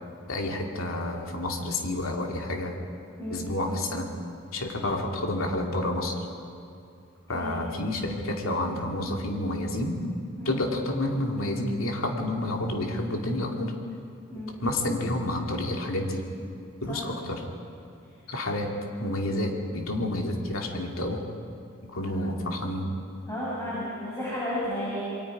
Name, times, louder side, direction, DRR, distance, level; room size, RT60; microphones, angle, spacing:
voice 1, 0.3-2.7 3.3-4.1 4.5-6.1 7.3-10.0 10.4-13.7 14.6-16.2 16.8-17.4 18.3-18.7 19.0-21.2 21.9-22.9, left 1 dB, 85° left, 1 dB, 2.7 m, -29 dB
voice 2, 3.2-3.5 7.3-7.5 10.4-10.6 14.3-14.5 16.9-17.0 23.3-25.0, left 1 dB, 15° left, -8 dB, 6.2 m, -33 dB
28.0 x 23.0 x 4.9 m, 2.5 s
head